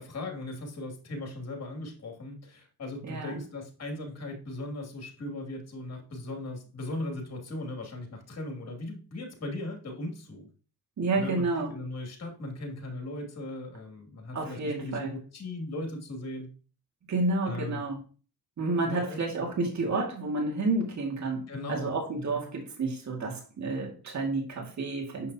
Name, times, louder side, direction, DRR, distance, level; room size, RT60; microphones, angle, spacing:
voice 1, 0.0-10.5 11.2-16.5 17.5-17.8 18.8-19.2 21.5-21.9 22.3-22.4, left 2 dB, 40° left, 2.7 m, -38 dB
voice 2, 3.0-3.4 11.0-11.7 14.3-15.2 17.1-18.0 18.6-25.3, right 3 dB, 45° right, 2.3 m, -30 dB
7.0 x 5.7 x 2.9 m
cardioid pair, 80°, 38 cm